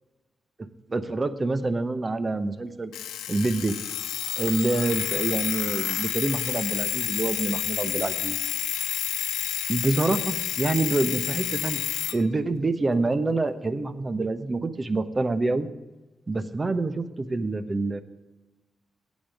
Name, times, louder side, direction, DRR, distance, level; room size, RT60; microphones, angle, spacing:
voice 1, 0.9-2.9 3.3-3.7 4.4-8.4 9.7-11.8 12.1-15.7 16.3-18.0, right 3 dB, 35° right, 11 dB, 1.0 m, -26 dB
Alarm, 2.9-12.2, left 11 dB, 85° left, 0.5 m, -29 dB
8.6 x 7.4 x 7.7 m, 1.2 s
supercardioid pair, 45°, 0 cm